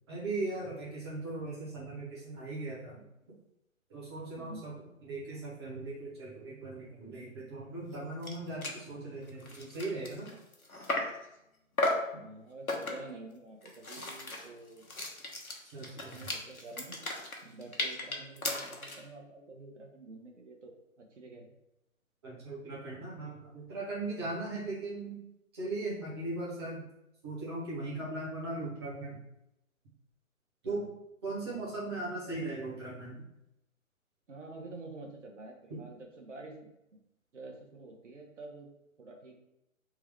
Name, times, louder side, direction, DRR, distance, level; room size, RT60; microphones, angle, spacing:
voice 1, 0.1-3.0 3.9-4.7 5.0-10.3 15.7-16.1 22.2-25.2 25.5-26.8 27.2-29.2 30.6-30.8 31.2-33.2, right 2 dB, 20° right, -6 dB, 1.0 m, -38 dB
voice 2, 4.4-4.7 12.2-14.9 15.8-17.1 17.4-21.5 30.6-30.9 31.4-31.8 34.3-36.7 37.3-38.7 39.0-39.3, right 2 dB, 60° right, 2 dB, 1.1 m, -48 dB
sound 1, 7.9-8.0 8.2-8.4 8.6-8.8 9.3-11.2 11.8-12.1 12.7-13.2 13.6-19.1, left 2 dB, 80° left, 1.1 m, -35 dB
3.6 x 3.1 x 3.3 m, 0.86 s
figure-of-eight pair, 140°, 42 cm